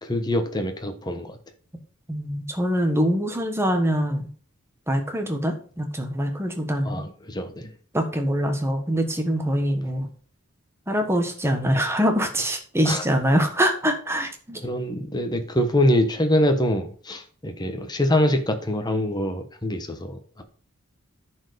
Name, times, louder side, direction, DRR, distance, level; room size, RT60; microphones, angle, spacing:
voice 1, 0.0-1.4 6.8-7.7 12.8-13.0 14.6-20.4, left 1 dB, 20° left, 1.2 m, -24 dB
voice 2, 2.1-4.3 4.9-7.0 7.9-10.1 10.9-14.6, equal, 10° right, 1.4 m, -24 dB
10.0 x 4.7 x 5.0 m
head